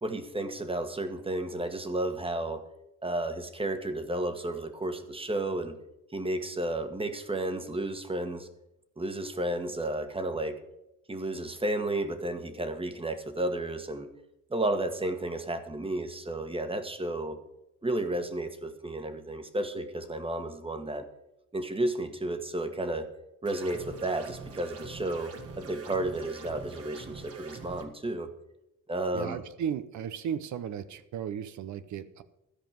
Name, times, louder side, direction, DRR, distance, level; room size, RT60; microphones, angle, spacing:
voice 1, 0.0-2.7 3.0-5.8 6.1-8.5 9.0-10.6 11.1-14.1 14.5-17.4 17.8-21.1 21.5-23.1 23.4-28.3 28.9-29.4, right 1 dB, 20° right, 9 dB, 1.4 m, -32 dB
sound 1, 23.5-27.8, right 4 dB, 50° right, 1.7 m, -44 dB
voice 2, 29.1-32.2, right 8 dB, 70° right, 12 dB, 0.8 m, -35 dB
13.0 x 5.2 x 9.2 m, 0.88 s
cardioid pair, 90°, 30 cm